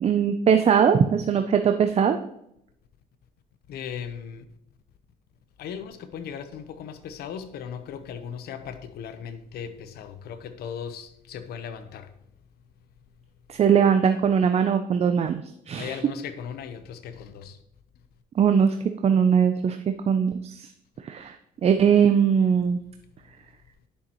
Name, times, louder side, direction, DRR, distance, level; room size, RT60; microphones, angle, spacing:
voice 1, 0.0-2.2 13.5-16.0 18.4-18.8 19.0-19.8 20.1-20.7 21.0-21.4 21.6-22.8, right 7 dB, 40° right, 0.5 m, -20 dB
voice 2, 3.7-4.4 5.6-12.1 15.7-17.6, left 7 dB, 70° left, 0.9 m, -37 dB
10.5 x 6.5 x 3.0 m
cardioid pair, 110°, 17 cm